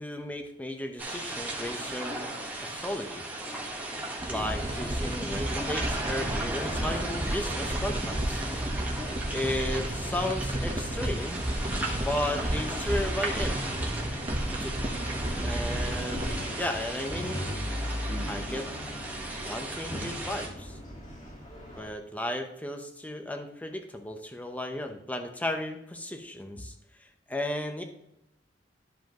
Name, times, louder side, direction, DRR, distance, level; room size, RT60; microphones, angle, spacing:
voice 1, 0.0-2.3 2.6-3.3 4.3-8.5 9.3-11.4 12.0-13.5 14.6-14.8 15.4-17.4 18.3-18.7 19.4-20.8 21.7-26.7 27.0-27.8, left 1 dB, 10° left, 5 dB, 0.9 m, -34 dB
sound 1, 1.0-20.5, right 2 dB, 10° right, 1.5 m, -36 dB
sound 2, 4.2-16.3, right 1 dB, 30° right, 1.0 m, -32 dB
sound 3, 4.3-21.9, left 1 dB, 45° left, 1.8 m, -40 dB
12.5 x 5.0 x 3.1 m, 0.83 s
head